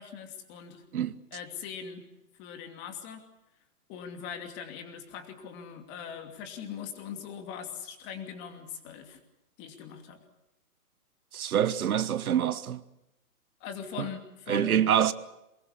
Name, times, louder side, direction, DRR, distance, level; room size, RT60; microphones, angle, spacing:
voice 1, 0.0-0.8 1.3-2.1 2.3-3.3 3.9-9.2 9.6-10.2 13.6-14.9, left 7 dB, 25° left, 2.7 m, -41 dB
voice 2, 11.3-12.8 14.0-14.1 14.5-15.1, right 9 dB, 65° right, 1.3 m, -26 dB
23.5 x 21.0 x 8.5 m
hypercardioid pair, 155°, 46 cm